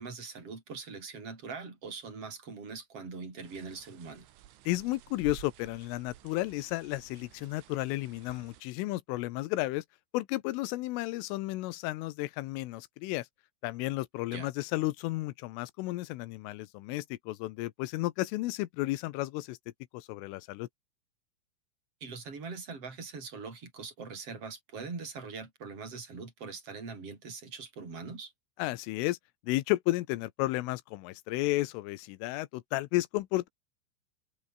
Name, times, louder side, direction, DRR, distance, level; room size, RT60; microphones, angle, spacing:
voice 1, 0.0-4.3 14.3-14.5 22.0-28.3, right 4 dB, 30° right, 6.5 m, -42 dB
sound 1, 3.4-8.6, right 12 dB, 80° right, 4.3 m, -52 dB
voice 2, 4.7-9.8 10.1-13.3 13.6-19.6 19.9-20.7 28.6-29.2 29.4-33.5, left 18 dB, 85° left, 3.5 m, -33 dB
open air
omnidirectional pair, 5.7 m